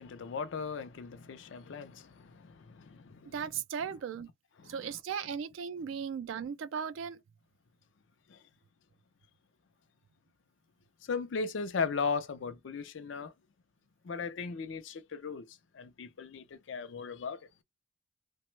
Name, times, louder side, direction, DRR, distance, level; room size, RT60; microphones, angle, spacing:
voice 1, 0.0-3.3 4.6-4.9 8.3-8.4 11.0-13.3 14.0-17.5, left 5 dB, 70° left, 0.4 m, -37 dB
voice 2, 3.3-4.3 4.7-7.2, right 7 dB, 80° right, 0.3 m, -37 dB
2.9 x 2.1 x 3.1 m
head